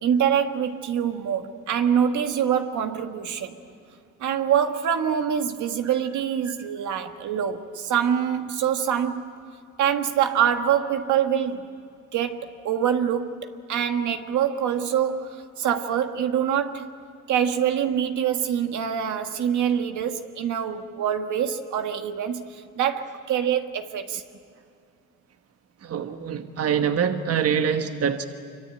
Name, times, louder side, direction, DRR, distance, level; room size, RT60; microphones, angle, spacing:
voice 1, 0.0-3.6 4.2-9.4 9.8-11.7 12.1-16.8 17.3-24.2, right 8 dB, 75° right, 6 dB, 1.6 m, -25 dB
voice 2, 25.8-28.2, right 7 dB, 55° right, 7 dB, 1.3 m, -25 dB
26.0 x 24.5 x 8.8 m, 2.4 s
cardioid pair, 90°, 30 cm